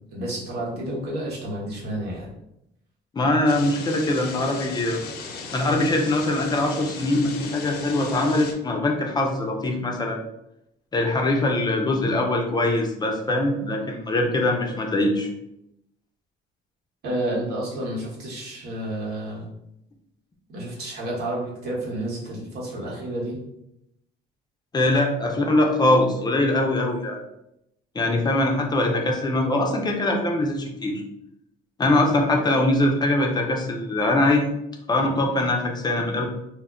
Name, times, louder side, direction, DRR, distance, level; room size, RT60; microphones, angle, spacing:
voice 1, 0.1-2.3 17.0-19.5 20.5-23.4, right 1 dB, 75° right, -4 dB, 1.1 m, -30 dB
voice 2, 3.1-5.0 5.5-10.2 10.9-15.3 24.7-27.2 27.9-31.0 31.8-34.5 34.9-36.3, left 2 dB, 25° left, 2 dB, 0.4 m, -22 dB
sound 1, 3.5-8.5, left 4 dB, 75° left, 0.5 m, -36 dB
2.1 x 2.0 x 3.6 m, 0.82 s
cardioid pair, 110°, 17 cm